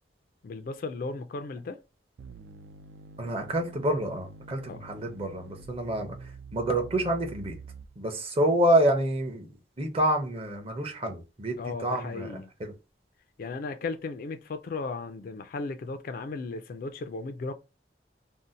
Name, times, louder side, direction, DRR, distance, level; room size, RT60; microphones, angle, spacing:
voice 1, 0.4-1.8 4.7-4.8 11.6-12.5 13.4-17.5, left 3 dB, 50° left, 0.3 m, -36 dB
sound 1, 2.2-8.2, right 4 dB, 70° right, 0.3 m, -47 dB
voice 2, 3.2-6.1 6.5-7.6 8.0-9.5 9.8-12.7, right 1 dB, 30° right, 0.6 m, -27 dB
2.6 x 2.0 x 3.8 m
head